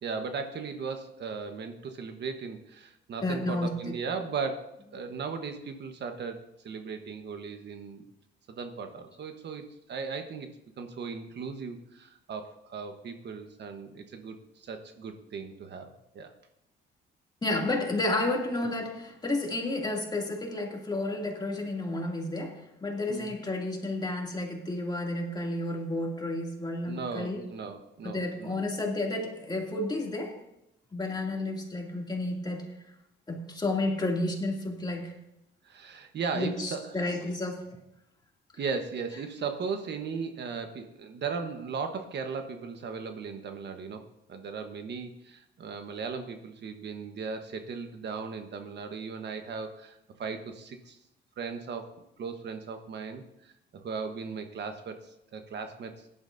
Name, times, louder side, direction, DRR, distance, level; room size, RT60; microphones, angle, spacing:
voice 1, 0.0-8.0 8.5-10.5 10.8-16.3 23.1-23.3 26.9-28.6 35.6-36.9 38.6-44.0 44.3-51.0 51.4-51.9 52.2-56.1, right 5 dB, 60° right, 6 dB, 1.2 m, -37 dB
voice 2, 3.2-3.9 17.4-27.4 28.0-30.4 30.9-32.7 33.3-35.1 36.3-37.7, left 2 dB, 20° left, 0 dB, 2.6 m, -31 dB
17.0 x 11.0 x 2.7 m, 0.84 s
cardioid pair, 90°, 20 cm